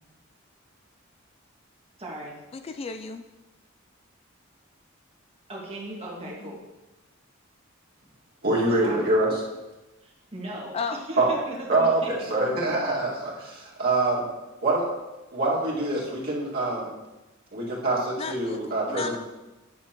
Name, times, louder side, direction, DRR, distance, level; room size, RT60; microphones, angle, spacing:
voice 1, 2.0-2.4 5.5-6.6 8.6-9.0 10.0-12.1, right 1 dB, 30° right, -3 dB, 1.7 m, -38 dB
voice 2, 2.5-3.2 6.2-6.6 10.7-11.0 18.2-18.6 18.9-19.2, left 4 dB, 30° left, 8 dB, 0.3 m, -33 dB
voice 3, 8.4-9.3 11.2-11.3 11.7-14.3 14.6-14.9 15.3-16.9 17.5-19.2, right 2 dB, 50° right, -5 dB, 2.1 m, -25 dB
9.4 x 7.3 x 3.0 m, 1.1 s
head